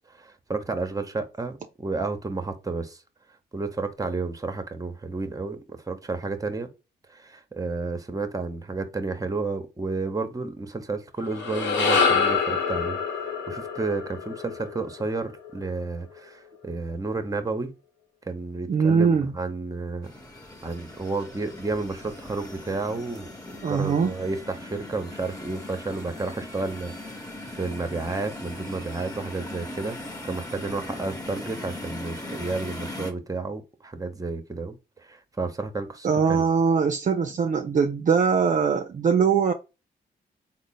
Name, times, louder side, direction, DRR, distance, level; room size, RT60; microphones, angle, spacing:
voice 1, 0.1-3.0 3.5-6.7 7.1-17.7 18.2-20.1 20.6-30.0 30.2-36.5, right 3 dB, 20° right, 0.8 m, -31 dB
sound 1, 11.2-15.7, left 5 dB, 85° left, 0.9 m, -26 dB
voice 2, 18.7-19.3 23.6-24.2 36.0-39.5, right 6 dB, 45° right, 0.5 m, -22 dB
sound 2, 20.0-33.1, left 1 dB, 20° left, 1.2 m, -39 dB
3.8 x 2.0 x 3.9 m
cardioid pair, 60°, 18 cm